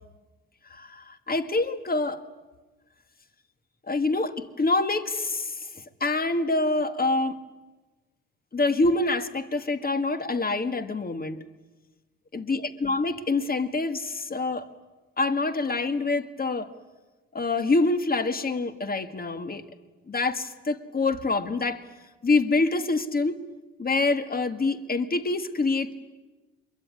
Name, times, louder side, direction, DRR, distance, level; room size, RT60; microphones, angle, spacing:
voice 1, 0.7-2.2 3.9-7.4 8.5-11.4 12.3-14.7 15.2-16.7 17.3-19.6 20.1-21.9 22.2-23.4 23.8-25.9, left 3 dB, 30° left, 10 dB, 2.0 m, -26 dB
26.0 x 22.5 x 9.8 m, 1.2 s
cardioid pair, 90°, 30 cm